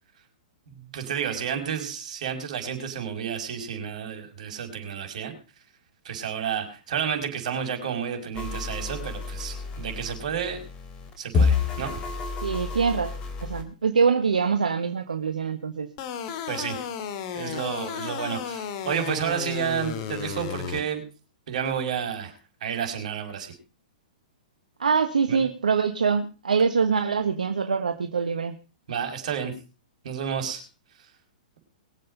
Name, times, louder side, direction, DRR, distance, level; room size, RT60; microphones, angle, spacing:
voice 1, 0.7-5.3 6.0-10.6 11.2-11.9 16.5-16.8 17.3-21.0 21.5-22.3 22.6-23.5 25.3-25.4 28.9-29.5 30.0-30.6, right 8 dB, 65° right, 5 dB, 5.6 m, -31 dB
sound 1, 8.3-13.6, left 5 dB, 25° left, 3.7 m, -29 dB
voice 2, 12.4-15.9 24.8-28.5, right 5 dB, 85° right, 7 dB, 1.4 m, -24 dB
sound 2, 16.0-20.8, left 8 dB, 45° left, 2.3 m, -33 dB
22.5 x 8.1 x 5.3 m, 0.34 s
hypercardioid pair, 120°, 4 cm